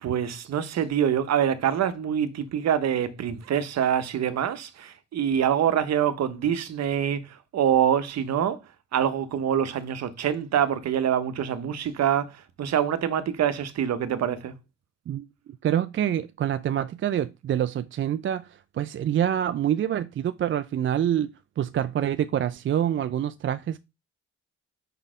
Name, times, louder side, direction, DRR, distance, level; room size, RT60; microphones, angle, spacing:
voice 1, 0.0-8.6 8.9-14.5, right 9 dB, 60° right, 0.9 m, -25 dB
voice 2, 15.6-23.8, right 10 dB, 40° right, 0.4 m, -26 dB
5.5 x 4.0 x 4.9 m
cardioid pair, 90°, 30 cm